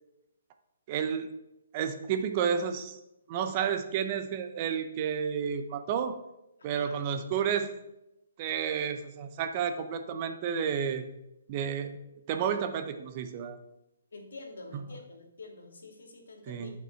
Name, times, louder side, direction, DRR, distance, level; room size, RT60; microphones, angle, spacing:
voice 1, 0.9-1.3 1.7-3.0 3.3-6.1 6.6-7.7 8.4-11.0 11.5-12.0 12.3-13.6 14.7-14.8 16.5-16.7, right 7 dB, 30° right, 8 dB, 0.7 m, -31 dB
voice 2, 14.1-16.7, left 3 dB, 85° left, 3 dB, 2.4 m, -47 dB
11.5 x 5.5 x 4.5 m, 0.90 s
hypercardioid pair, 165°, 0 cm